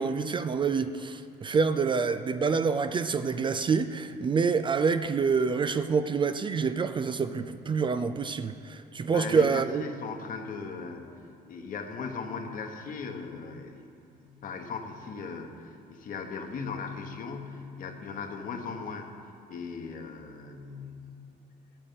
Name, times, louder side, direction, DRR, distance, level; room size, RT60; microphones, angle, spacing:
voice 1, 0.0-9.8, right 5 dB, 30° right, 10 dB, 0.4 m, -27 dB
voice 2, 9.1-11.0 11.5-13.9 14.3-19.1 19.5-21.0, left 5 dB, 55° left, 4 dB, 1.3 m, -38 dB
9.0 x 8.5 x 7.6 m, 2.8 s
cardioid pair, 110°, 17 cm